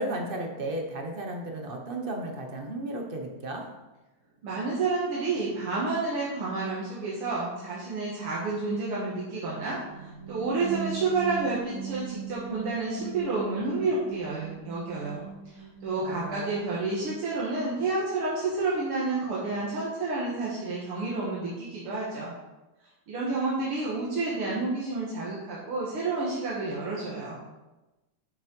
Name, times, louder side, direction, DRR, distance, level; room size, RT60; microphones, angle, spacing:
voice 1, 0.0-3.6 16.0-16.6, right 1 dB, 40° right, 2 dB, 0.7 m, -34 dB
voice 2, 4.4-22.3 23.1-27.4, right 3 dB, 80° right, -6 dB, 2.4 m, -30 dB
sound 1, 9.9-17.5, right 8 dB, 55° left, 1.0 m, -40 dB
8.6 x 5.5 x 5.3 m, 1.1 s
omnidirectional pair, 2.4 m